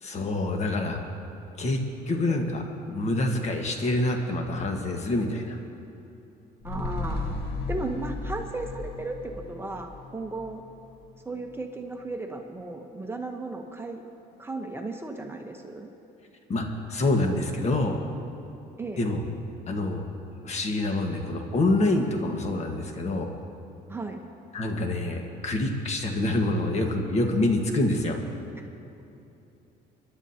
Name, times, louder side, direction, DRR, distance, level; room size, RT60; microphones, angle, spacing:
voice 1, 0.0-1.0 1.6-1.8 2.1-5.6 16.5-18.0 19.0-19.2 19.7-20.0 20.4-23.3 24.5-28.2, left 2 dB, 40° left, 3 dB, 1.5 m, -26 dB
sound 1, 6.6-11.1 11.5-11.6, left 3 dB, 75° left, 1.6 m, -35 dB
voice 2, 6.6-7.4 7.7-10.6 11.2-14.0 14.4-15.9 18.8-19.0 23.9-24.2 28.6-28.7, right 2 dB, 15° right, 3 dB, 1.0 m, -35 dB
26.5 x 11.5 x 2.9 m, 2.8 s
cardioid pair, 110°, 17 cm